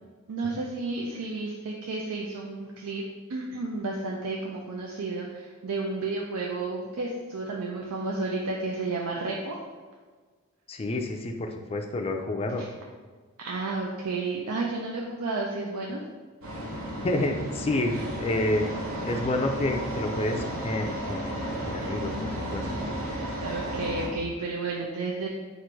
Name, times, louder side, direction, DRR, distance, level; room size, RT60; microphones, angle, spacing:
voice 1, 0.3-3.0 3.3-9.6 12.6-12.7 13.4-16.0 23.4-25.3, right 3 dB, 85° right, -2 dB, 0.5 m, -32 dB
voice 2, 10.7-12.6 17.0-18.7 19.0-22.7, left 2 dB, 25° left, 4 dB, 0.4 m, -29 dB
sound 1, 16.4-24.1, right 1 dB, 70° right, 1.0 m, -33 dB
4.4 x 2.5 x 4.6 m, 1.5 s
head